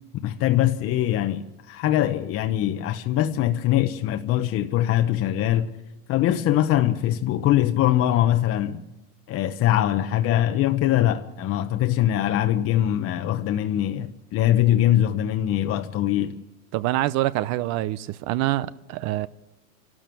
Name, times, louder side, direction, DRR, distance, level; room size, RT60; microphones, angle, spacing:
voice 1, 0.2-5.7 6.1-8.8 9.3-16.4, left 12 dB, 35° left, 0.9 m, -22 dB
voice 2, 16.7-19.3, right 15 dB, 40° right, 0.6 m, -25 dB
29.0 x 12.5 x 7.7 m
supercardioid pair, 135°, 43 cm